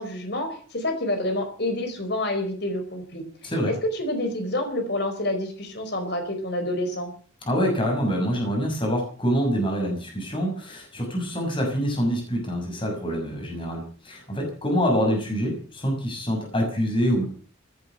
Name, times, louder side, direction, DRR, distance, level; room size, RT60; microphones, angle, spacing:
voice 1, 0.0-7.1, left 1 dB, 55° left, 6 dB, 4.8 m, -28 dB
voice 2, 7.4-17.2, equal, 25° left, 1 dB, 6.4 m, -25 dB
16.5 x 11.0 x 7.9 m, 0.44 s
head